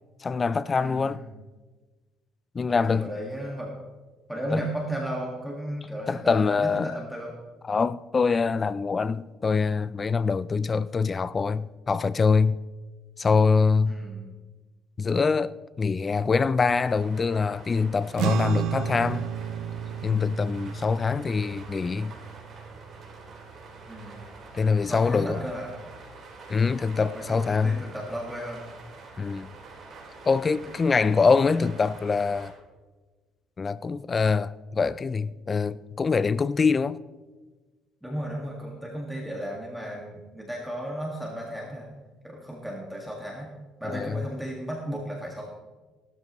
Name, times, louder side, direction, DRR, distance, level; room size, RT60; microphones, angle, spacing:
voice 1, 0.2-1.2 2.5-3.1 4.5-4.6 6.1-6.9 7.6-12.6 13.2-14.0 15.0-19.3 20.0-22.1 24.5-25.4 26.5-27.8 29.2-29.5 30.3-32.5 33.6-37.0 43.9-44.2, left 5 dB, 25° left, 0.4 m, -24 dB
voice 2, 0.8-1.3 2.6-3.7 4.3-7.3 13.8-14.3 23.8-24.2 24.8-25.7 27.0-28.6 30.6-30.7 31.0-31.1 38.0-41.9 42.2-43.5 43.8-45.5, right 1 dB, ahead, 1.8 m, -35 dB
sound 1, 16.6-32.5, right 3 dB, 40° right, 4.1 m, -46 dB
sound 2, 18.2-24.8, right 9 dB, 75° right, 0.5 m, -33 dB
17.0 x 12.5 x 3.1 m
cardioid pair, 130°, 0 cm